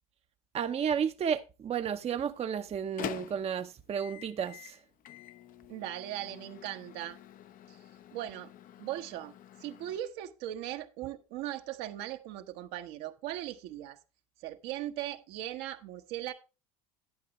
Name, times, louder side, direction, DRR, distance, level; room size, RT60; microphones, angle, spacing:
voice 1, 0.5-4.8, right 7 dB, 35° right, 0.8 m, -32 dB
Microwave oven, 1.8-10.0, left 11 dB, 50° left, 0.8 m, -47 dB
voice 2, 5.7-7.2 7.7-7.8 8.1-8.5 8.8-9.3 9.6-14.0 14.4-16.3, right 13 dB, 65° right, 1.2 m, -39 dB
11.0 x 8.5 x 3.1 m
hypercardioid pair, 80°, 19 cm